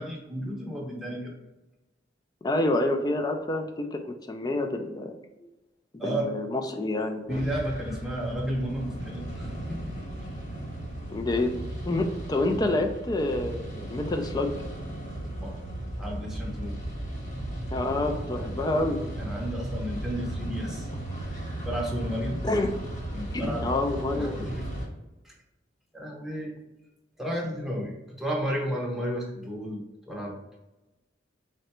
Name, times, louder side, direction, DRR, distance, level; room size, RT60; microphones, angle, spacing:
voice 1, 0.0-1.3 5.4-5.5 6.0-6.3 7.3-9.9 15.4-15.6 16.0-16.8 19.2-20.9 21.6-22.4 23.1-23.7 24.1-24.7 25.2-25.3 25.9-26.5 27.2-30.4, equal, ahead, -2 dB, 0.7 m, -32 dB
voice 2, 2.4-5.1 6.0-7.5 11.1-14.5 17.7-19.0 22.4-22.7 23.3-24.4, left 2 dB, 20° left, 4 dB, 0.3 m, -28 dB
sound 1, 7.3-24.9, right 1 dB, 40° left, 1.2 m, -36 dB
3.8 x 2.2 x 4.2 m, 1.0 s
head